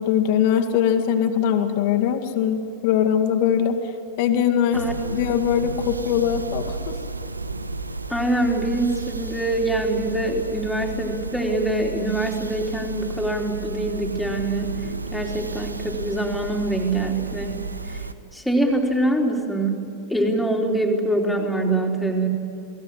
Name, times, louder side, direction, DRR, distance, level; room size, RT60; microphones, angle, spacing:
voice 1, 0.0-3.8 4.2-4.8 5.1-7.0, left 9 dB, 45° left, 7 dB, 2.2 m, -21 dB
sound 1, 4.7-18.1, right 3 dB, 80° right, 1.0 m, -32 dB
voice 2, 8.1-14.8 15.1-17.6 18.3-19.8 20.1-22.3, right 2 dB, ahead, 0 dB, 3.7 m, -24 dB
28.5 x 18.5 x 9.9 m, 2.7 s
figure-of-eight pair, 90°, 0 cm